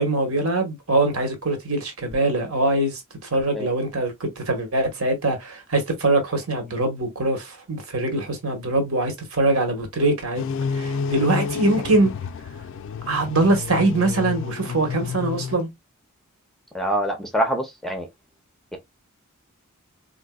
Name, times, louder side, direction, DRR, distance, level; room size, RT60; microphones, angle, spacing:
voice 1, 0.0-10.4 10.7-12.1 13.1-15.7, right 2 dB, 70° right, 1.2 m, -23 dB
sound 1, 10.3-15.6, left 6 dB, 60° left, 0.3 m, -30 dB
voice 2, 16.7-18.1 18.7-18.8, right 1 dB, ahead, 0.6 m, -25 dB
3.8 x 2.6 x 2.3 m
head